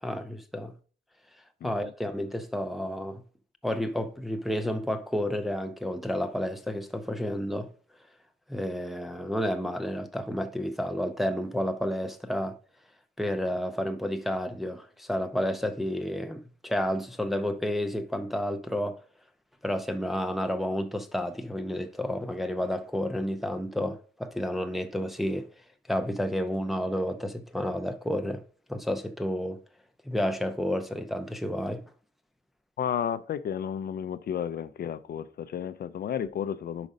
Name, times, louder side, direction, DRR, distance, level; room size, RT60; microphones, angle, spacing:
voice 1, 0.0-0.7 1.6-3.2 3.6-7.7 8.5-12.6 13.2-19.0 19.6-25.5 25.9-28.4 28.7-29.6 30.1-31.8, equal, ahead, 0.4 m, -30 dB
voice 2, 1.6-1.9 32.8-36.9, left 8 dB, 60° left, 0.4 m, -32 dB
5.1 x 4.9 x 5.3 m
wide cardioid pair, 170°, 18 cm